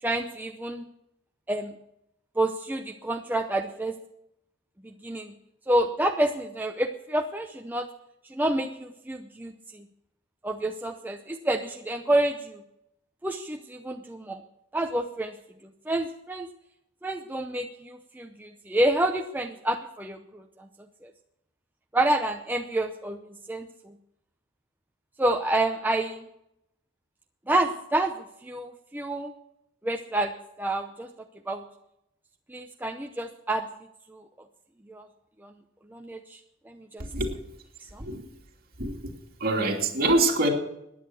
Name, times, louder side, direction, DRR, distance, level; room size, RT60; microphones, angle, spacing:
voice 1, 0.0-0.8 1.5-1.7 2.4-4.0 4.8-5.3 5.7-7.9 8.3-9.9 10.4-12.6 13.2-14.4 14.7-15.4 15.6-16.5 17.0-20.7 21.0-21.1 21.9-23.9 25.2-26.3 27.5-28.1 28.4-29.3 29.8-30.3 30.6-31.1 31.5-31.6 32.5-33.6 34.1-34.2 34.9-35.1 35.4-35.5 35.9-36.4 36.7-37.1 37.8-38.1, right 1 dB, 10° right, 4 dB, 0.6 m, -28 dB
voice 2, 37.0-37.4 38.0-38.3 38.8-39.1 39.4-40.5, right 2 dB, 50° right, 0 dB, 2.7 m, -25 dB
15.0 x 10.5 x 6.3 m, 0.82 s
head